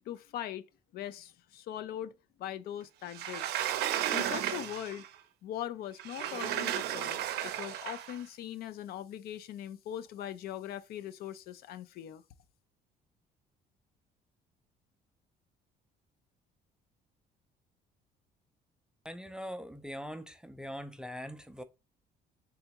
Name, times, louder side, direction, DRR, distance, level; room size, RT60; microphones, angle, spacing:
voice 1, 0.1-0.6 0.9-3.5 4.1-5.1 5.4-12.2, left 11 dB, 65° left, 0.4 m, -41 dB
Sliding door, 3.1-5.1 6.0-8.2, right 11 dB, 70° right, 0.5 m, -34 dB
voice 2, 19.0-21.6, equal, 5° right, 0.3 m, -42 dB
3.5 x 3.4 x 2.9 m
cardioid pair, 110°, 17 cm